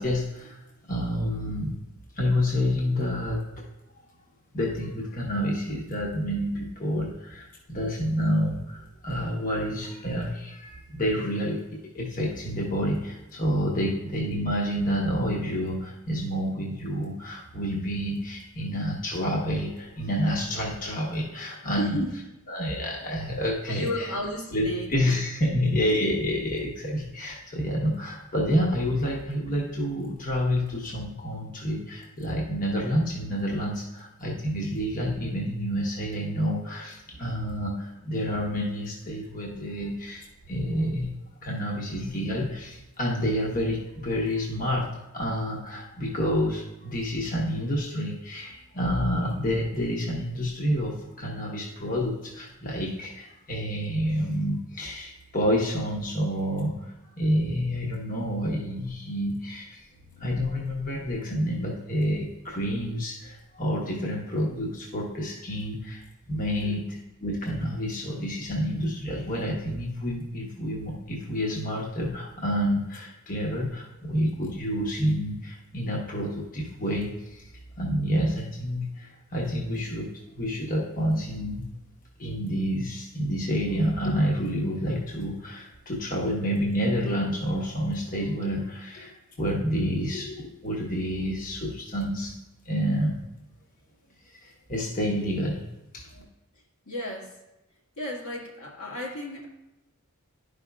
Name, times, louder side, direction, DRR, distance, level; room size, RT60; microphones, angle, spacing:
voice 1, 0.0-1.8 2.1-3.4 4.5-22.0 22.5-24.1 24.5-41.1 41.4-59.9 60.2-66.0 66.3-77.5 77.8-81.7 82.2-92.4 92.6-93.2 94.2-96.2, equal, 40° left, -2 dB, 1.0 m, -29 dB
voice 2, 21.7-22.1 23.7-25.1 59.9-60.3 66.6-66.8 96.9-97.3 98.0-99.5, equal, 85° left, -3 dB, 1.8 m, -34 dB
11.5 x 5.2 x 2.3 m, 0.95 s
head